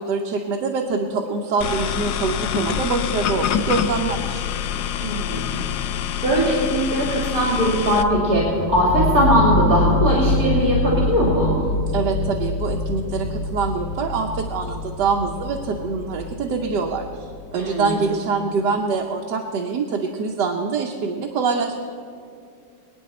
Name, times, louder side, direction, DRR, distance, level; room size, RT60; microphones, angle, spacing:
voice 1, 0.0-4.4 11.9-21.7, right 4 dB, 85° right, 2 dB, 1.5 m, -25 dB
sound 1, 1.6-8.0, left 9 dB, 75° left, 1.2 m, -26 dB
voice 2, 5.0-5.6 6.2-11.5 17.5-18.0, equal, 55° right, -4 dB, 3.0 m, -20 dB
sound 2, 8.0-17.8, left 2 dB, 55° left, 1.1 m, -25 dB
25.0 x 9.3 x 4.3 m, 2.4 s
omnidirectional pair, 1.8 m